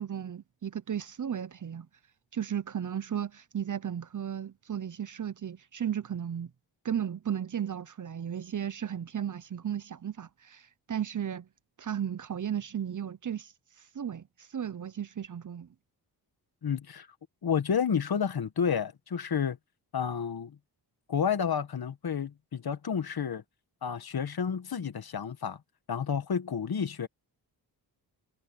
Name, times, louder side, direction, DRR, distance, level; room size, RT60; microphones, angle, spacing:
voice 1, 0.0-1.9 2.3-6.5 6.8-11.5 11.8-13.5 13.9-15.7, right 9 dB, 45° right, 0.8 m, -35 dB
voice 2, 16.6-17.1 17.4-19.6 19.9-20.6 21.1-23.4 23.8-25.6 25.9-27.1, left 7 dB, 55° left, 1.8 m, -30 dB
cardioid pair, 60°, 43 cm